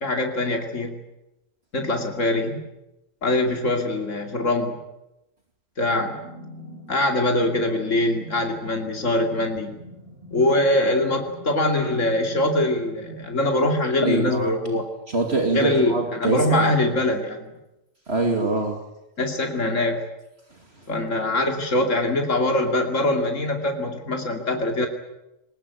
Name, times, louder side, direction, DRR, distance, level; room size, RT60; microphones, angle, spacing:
voice 1, 0.0-1.0 1.7-2.6 3.2-4.8 5.8-6.2 6.9-9.8 10.3-14.8 15.5-17.5 19.2-20.0 20.9-24.9, left 1 dB, 75° left, 4 dB, 3.0 m, -23 dB
sound 1, 5.9-13.9, equal, 30° right, 7.4 m, -45 dB
voice 2, 14.0-14.5 15.1-16.7 18.1-18.8, right 2 dB, 55° right, 3 dB, 2.8 m, -24 dB
22.0 x 20.0 x 9.3 m, 0.89 s
omnidirectional pair, 1.3 m